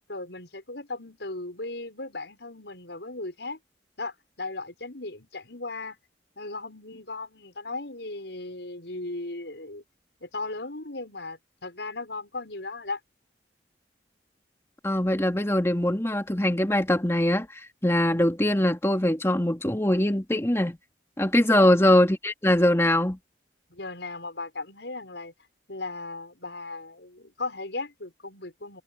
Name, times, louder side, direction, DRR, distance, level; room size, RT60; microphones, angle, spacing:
voice 1, 0.0-3.6 4.0-6.0 6.4-9.8 10.2-13.0 21.5-21.8 23.7-25.3 25.7-28.8, left 3 dB, 75° left, 6.3 m, -37 dB
voice 2, 14.8-20.8 21.2-23.2, left 1 dB, 15° left, 2.3 m, -22 dB
head